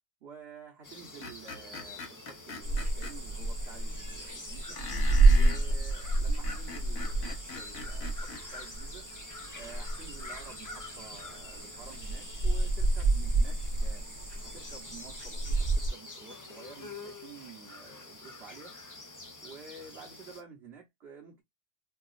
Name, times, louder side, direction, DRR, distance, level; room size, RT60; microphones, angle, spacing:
voice 1, 0.2-4.8 5.3-9.0 9.5-14.0 14.4-18.8 19.4-21.4, right 6 dB, 50° right, 1.0 m, -50 dB
sound 1, 0.8-20.4, left 2 dB, 30° left, 0.3 m, -47 dB
Screech, 1.2-3.1 4.8-5.6 6.3-8.4, left 4 dB, 75° left, 1.3 m, -42 dB
sound 2, 2.6-15.9, right 2 dB, 25° right, 0.7 m, -29 dB
4.5 x 2.3 x 2.4 m
omnidirectional pair, 1.5 m